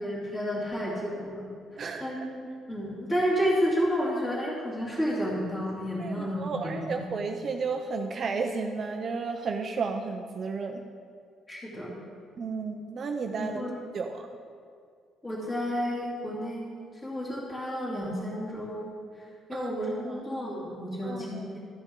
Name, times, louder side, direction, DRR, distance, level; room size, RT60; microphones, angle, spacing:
voice 1, 0.0-1.5 2.0-7.0 11.5-11.9 13.4-13.8 15.2-16.7 17.0-19.0 19.5-21.6, equal, 20° left, -6 dB, 2.5 m, -31 dB
voice 2, 1.8-2.1 6.0-10.8 12.4-13.6 13.9-14.3 19.5-19.7 20.0-20.2 21.0-21.5, right 4 dB, 35° right, 4 dB, 0.5 m, -33 dB
13.5 x 8.2 x 3.7 m, 2.2 s
cardioid pair, 165°, 0 cm